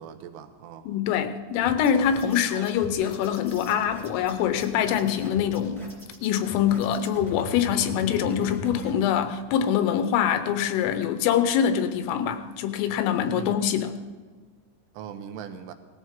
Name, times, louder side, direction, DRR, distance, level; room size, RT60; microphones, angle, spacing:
voice 1, 0.0-0.9 13.2-13.5 14.9-15.7, right 8 dB, 80° right, 8 dB, 3.3 m, -40 dB
voice 2, 0.9-5.9 6.2-13.9, left 9 dB, 85° left, 9 dB, 3.5 m, -24 dB
sound 1, 1.6-8.9, left 1 dB, 5° left, 1.8 m, -40 dB
18.5 x 14.0 x 3.7 m, 1.5 s
omnidirectional pair, 5.8 m